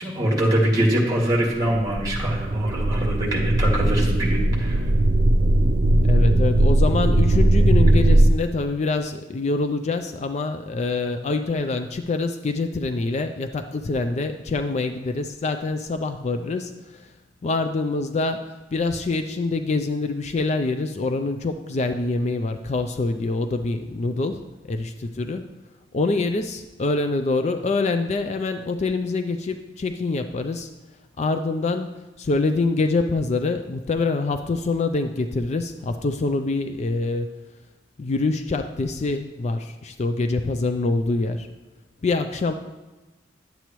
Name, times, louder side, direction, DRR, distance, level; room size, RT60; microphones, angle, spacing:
voice 1, 0.0-4.8, right 1 dB, 20° right, -2 dB, 2.1 m, -23 dB
sound 1, 1.7-8.3, right 1 dB, 55° right, 0.5 m, -19 dB
voice 2, 6.0-17.1 17.4-24.4 24.7-25.4 25.9-30.7 31.2-37.3 38.0-41.5 42.0-42.5, left 3 dB, 40° left, 8 dB, 0.4 m, -25 dB
10.5 x 8.2 x 3.0 m, 1.2 s
head